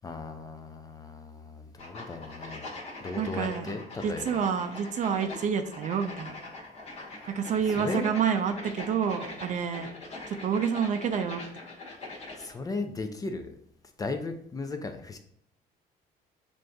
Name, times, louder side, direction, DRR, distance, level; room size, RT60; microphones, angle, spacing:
voice 1, 0.0-2.7 3.0-4.4 7.7-8.1 12.4-13.5 14.0-15.2, left 3 dB, 20° left, 7 dB, 0.4 m, -36 dB
sound 1, 1.8-12.5, left 2 dB, 40° left, 1.1 m, -43 dB
voice 2, 3.2-3.7 4.0-6.3 7.3-9.9 10.3-11.4, right 7 dB, 45° right, 8 dB, 0.4 m, -28 dB
6.1 x 2.6 x 2.2 m, 0.70 s
cardioid pair, 110°, 17 cm